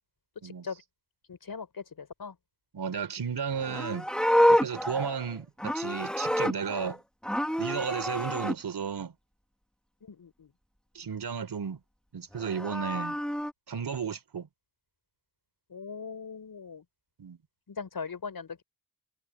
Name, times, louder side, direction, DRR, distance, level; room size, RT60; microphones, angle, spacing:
voice 1, 0.4-0.8 1.3-2.4 6.8-6.9 10.0-10.5 15.7-16.8 17.7-18.6, left 5 dB, 65° left, 5.2 m, -40 dB
voice 2, 2.7-4.1 4.5-7.0 7.6-9.1 10.9-11.8 12.1-13.2 13.7-14.5 17.2-17.4, right 6 dB, 80° right, 4.7 m, -33 dB
Livestock farm animals working animals, 3.5-7.0 7.2-8.5 12.3-13.5, equal, ahead, 4.2 m, -28 dB
cardioid pair, 70°, 38 cm